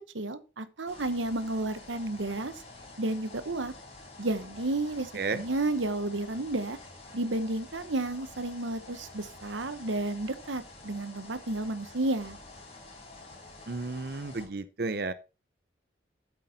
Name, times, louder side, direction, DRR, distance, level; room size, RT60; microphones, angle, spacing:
voice 1, 0.1-2.5 3.0-3.7 4.2-6.8 7.1-12.4, right 2 dB, 90° right, 1.0 m, -32 dB
sound 1, 0.9-14.5, left 2 dB, 35° left, 3.7 m, -49 dB
voice 2, 13.7-15.1, right 3 dB, 55° right, 0.6 m, -32 dB
8.3 x 7.9 x 4.1 m
head